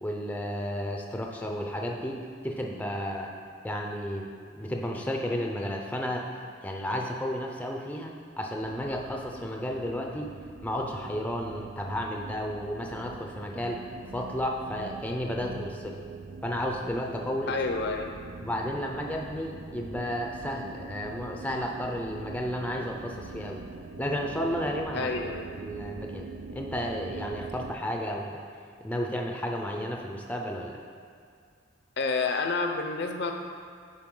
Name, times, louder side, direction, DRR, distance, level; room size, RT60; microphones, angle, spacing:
voice 1, 0.0-2.2 2.4-3.3 3.6-4.3 4.5-6.2 6.6-10.3 10.6-13.8 14.1-16.0 16.4-17.6 18.4-23.6 24.0-25.1 25.6-26.3 26.6-28.4 28.8-30.8, equal, 10° left, 1 dB, 0.5 m, -32 dB
sound 1, 8.6-27.7, right 3 dB, 65° right, 0.4 m, -43 dB
sound 2, 13.4-15.7 17.9-19.3, right 1 dB, 85° right, 0.9 m, -50 dB
voice 2, 17.5-18.2 24.9-25.5 32.0-33.3, left 3 dB, 60° left, 4 dB, 0.6 m, -29 dB
10.5 x 4.3 x 3.8 m, 2.3 s
head